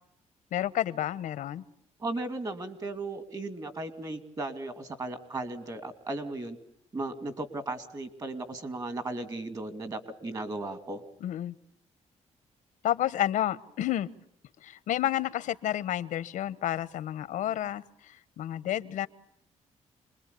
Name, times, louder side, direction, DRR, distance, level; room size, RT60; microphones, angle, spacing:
voice 1, 0.5-1.6 11.2-11.5 12.8-14.1 14.6-17.8 18.4-19.1, left 12 dB, 85° left, 16 dB, 1.0 m, -30 dB
voice 2, 2.0-6.6 6.9-11.0, right 2 dB, 30° right, 11 dB, 2.7 m, -36 dB
27.5 x 21.5 x 8.4 m, 0.75 s
cardioid pair, 140°, 13 cm